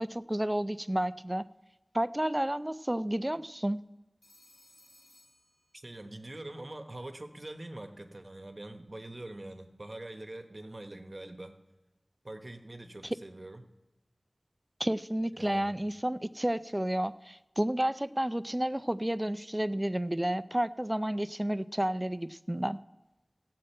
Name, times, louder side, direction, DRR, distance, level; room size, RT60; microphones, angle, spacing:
voice 1, 0.0-1.4 1.9-3.8 14.8-22.8, right 1 dB, 20° right, 14 dB, 0.4 m, -31 dB
Telephone, 4.2-6.3, equal, 30° left, 4.8 m, -62 dB
voice 2, 5.8-11.6 12.2-13.6 15.4-15.8, right 1 dB, 45° right, 7 dB, 1.1 m, -44 dB
16.5 x 7.6 x 4.4 m, 1.0 s
wide cardioid pair, 50°, 0 cm